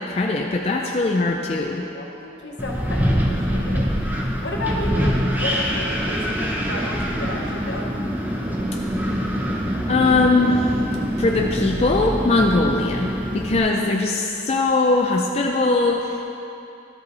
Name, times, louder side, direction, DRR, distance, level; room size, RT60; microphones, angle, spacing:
voice 1, 0.0-1.8 9.9-10.8 11.2-16.3, left 2 dB, 35° left, 0 dB, 0.4 m, -20 dB
voice 2, 1.9-3.9 4.4-7.9 13.8-13.9, left 1 dB, 75° left, -1 dB, 1.1 m, -32 dB
Wind, 2.6-13.6, equal, 10° right, 0.6 m, -24 dB
12.5 x 5.3 x 4.1 m, 2.8 s
head